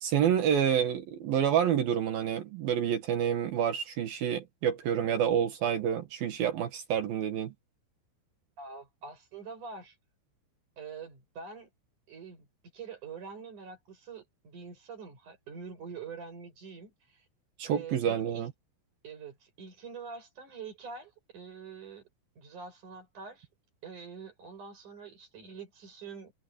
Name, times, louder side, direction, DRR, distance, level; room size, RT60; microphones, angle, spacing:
voice 1, 0.0-7.5 17.6-18.5, right 9 dB, 60° right, 2.7 m, -28 dB
voice 2, 8.6-10.0 10.8-11.7 12.1-12.5 12.7-17.2 17.7-18.5 19.0-22.0 22.4-23.5 23.8-26.3, right 5 dB, 40° right, 9.0 m, -45 dB
omnidirectional pair, 5.8 m